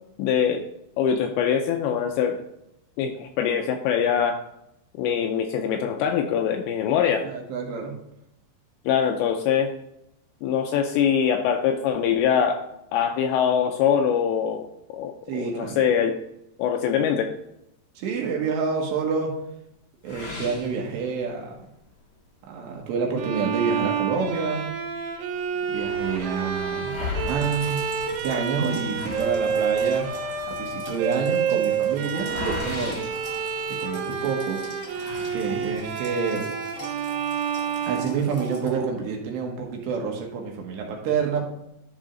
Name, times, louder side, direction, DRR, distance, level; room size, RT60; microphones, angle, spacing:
voice 1, 0.2-0.6 1.0-2.4 3.0-4.4 5.0-7.3 8.9-9.7 10.4-12.6 12.9-16.1 16.6-17.3, left 8 dB, 85° left, 5 dB, 2.6 m, -23 dB
voice 2, 7.2-7.9 15.3-15.8 18.0-19.3 20.0-21.6 22.5-24.7 25.7-27.9 28.2-30.1 30.5-33.0 33.8-34.6 35.3-36.4 37.9-41.4, right 5 dB, 70° right, 0 dB, 3.2 m, -28 dB
sound 1, 20.0-21.5 22.0-22.1 22.5-22.6 23.4-24.7 25.1-25.2 25.4-34.1 34.8-35.9, left 4 dB, 65° left, 1.5 m, -38 dB
Bowed string instrument, 23.2-38.9, right 7 dB, 85° right, 3.4 m, -29 dB
sound 2, 27.2-38.7, right 1 dB, 50° left, 0.9 m, -43 dB
11.5 x 4.9 x 3.8 m, 0.81 s
omnidirectional pair, 5.5 m